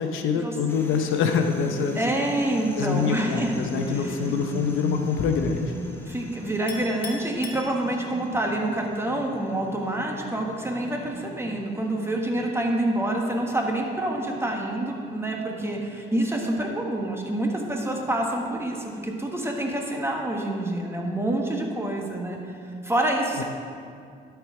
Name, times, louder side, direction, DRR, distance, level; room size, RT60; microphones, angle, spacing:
voice 1, 0.0-2.0 2.7-5.7 23.4-23.5, left 6 dB, 85° left, 5 dB, 0.7 m, -25 dB
sound 1, 0.7-19.1, equal, 10° left, 1.0 m, -41 dB
voice 2, 1.9-3.5 3.9-4.1 6.1-22.4 22.8-23.4, right 1 dB, 10° right, 1 dB, 1.3 m, -27 dB
Chink clink, 6.7-8.3, left 4 dB, 50° left, 1.3 m, -40 dB
12.0 x 4.6 x 4.7 m, 2.3 s
cardioid pair, 90°, 20 cm